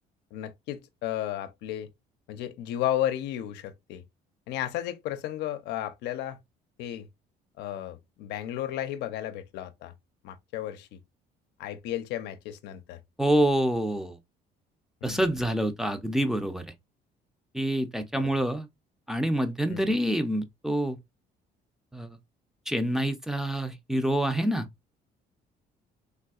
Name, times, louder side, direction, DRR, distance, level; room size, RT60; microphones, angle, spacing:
voice 1, 0.3-1.9 2.3-4.0 4.5-6.4 6.8-7.1 7.6-9.9 10.2-11.0 11.6-13.0 15.0-15.3 18.1-18.3 19.7-20.0, left 12 dB, 85° left, 0.5 m, -33 dB
voice 2, 13.2-14.2 15.0-16.7 17.5-18.7 19.1-21.0 21.9-22.1 22.7-24.7, right 1 dB, 5° right, 0.4 m, -27 dB
3.4 x 2.6 x 2.3 m
cardioid pair, 110°, 17 cm